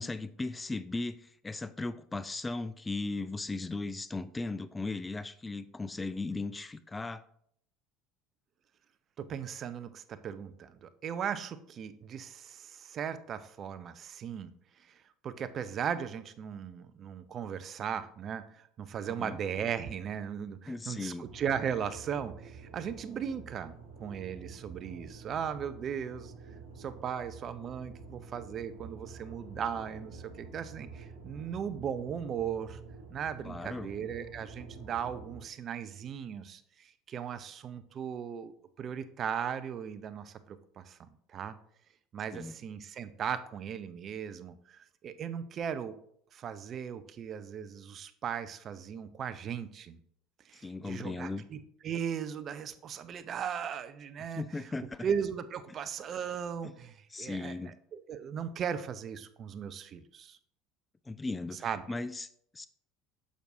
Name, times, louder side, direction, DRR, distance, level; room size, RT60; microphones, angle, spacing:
voice 1, 0.0-7.2 19.2-19.4 20.7-21.3 33.4-33.9 42.3-42.6 50.6-51.5 54.4-55.1 56.6-56.7 57.1-57.8 61.1-62.7, left 3 dB, 15° left, 13 dB, 0.3 m, -37 dB
voice 2, 9.2-14.5 14.8-14.9 15.2-26.3 26.8-32.8 33.1-38.5 38.8-41.5 42.1-46.0 46.3-50.0 50.5-54.4 55.0-60.4 61.6-61.8, right 8 dB, 45° right, 12 dB, 0.5 m, -37 dB
sound 1, 21.2-35.4, right 4 dB, 80° right, 1.4 m, -48 dB
6.5 x 6.1 x 2.6 m, 0.67 s
hypercardioid pair, 70°, 0 cm